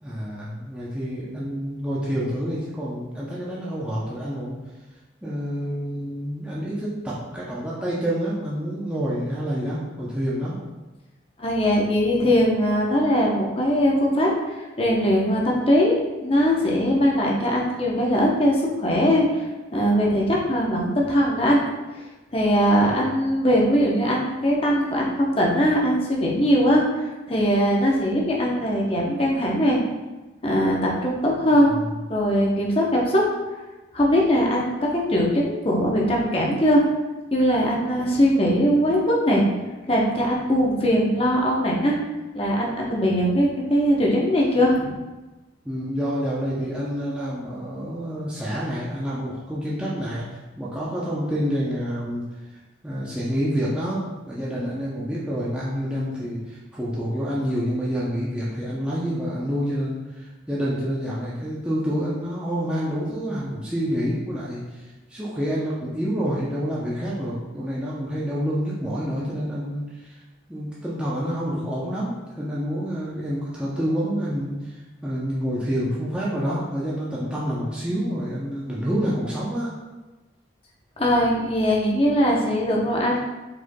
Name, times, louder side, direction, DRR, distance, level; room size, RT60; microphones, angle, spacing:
voice 1, 0.0-4.6 5.2-10.6 31.5-31.8 45.6-52.2 52.8-70.1 70.5-79.7, equal, 5° right, -8 dB, 0.6 m, -28 dB
voice 2, 11.4-15.9 16.2-19.3 19.7-21.6 22.3-26.8 27.3-29.8 30.4-31.7 32.1-33.2 33.9-36.8 37.3-39.4 39.9-42.0 42.3-44.9 81.0-83.2, equal, 30° left, -3 dB, 0.7 m, -20 dB
4.8 x 4.3 x 2.2 m, 1.1 s
head